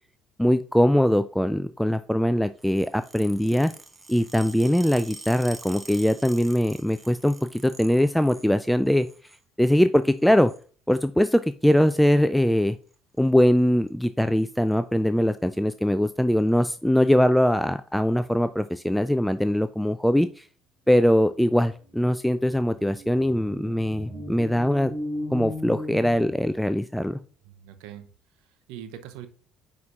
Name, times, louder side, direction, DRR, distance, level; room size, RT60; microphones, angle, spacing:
voice 1, 0.4-3.7 4.1-9.1 9.6-10.5 10.9-12.8 13.2-20.5 20.9-24.9 25.3-27.2, equal, 5° left, 11 dB, 0.3 m, -22 dB
sound 1, 2.6-8.5 8.8-9.4 10.1-10.6 11.7-11.9 12.9-13.2 13.5-13.6 13.9-14.0 14.3-14.7 15.4-15.5 16.4-16.5, right 2 dB, 20° right, 1.2 m, -45 dB
sound 2, 21.8-26.8, left 1 dB, 50° right, 1.9 m, -37 dB
voice 2, 27.4-29.3, right 10 dB, 70° right, 9 dB, 0.7 m, -43 dB
9.3 x 4.3 x 2.4 m, 0.42 s
hypercardioid pair, 55°, 0 cm